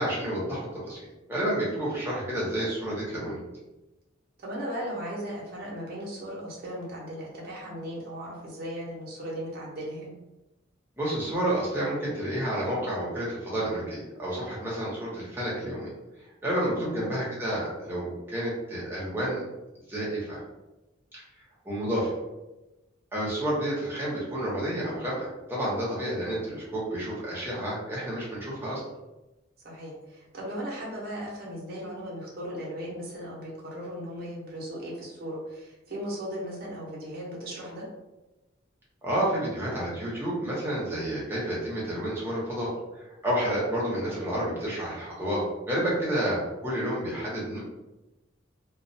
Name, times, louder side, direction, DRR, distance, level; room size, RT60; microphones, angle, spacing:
voice 1, 0.0-3.4 11.0-15.9 16.4-19.4 19.9-20.4 21.6-22.2 23.1-28.8 39.0-47.6, right 1 dB, 10° right, -6 dB, 0.7 m, -30 dB
voice 2, 4.4-10.1 16.7-17.1 29.6-37.9, equal, 50° right, -4 dB, 0.7 m, -37 dB
2.2 x 2.1 x 2.6 m, 1.0 s
head